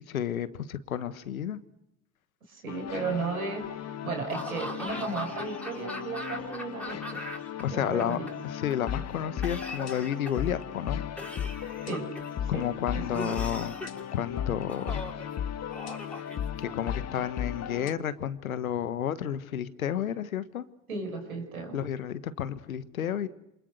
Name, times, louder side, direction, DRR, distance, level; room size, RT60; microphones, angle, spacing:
voice 1, 0.0-1.6 7.6-8.2 8.4-11.0 12.5-13.7 14.1-15.0 16.6-20.7 21.7-23.3, left 9 dB, 85° left, 14 dB, 1.4 m, -31 dB
voice 2, 2.5-7.2 7.7-8.3 11.9-12.1 12.5-12.6 12.9-13.3 20.9-21.8, right 4 dB, 90° right, 4 dB, 5.7 m, -35 dB
sound 1, 2.7-17.9, left 9 dB, 40° left, 1.7 m, -36 dB
Laughter / Cough, 4.3-7.6 7.9-8.7 9.4-10.5 11.2-12.4 13.1-14.0 14.7-15.3 15.7-16.9, left 1 dB, 5° left, 4.9 m, -40 dB
28.0 x 26.5 x 6.6 m, 0.86 s
hypercardioid pair, 65°, 41 cm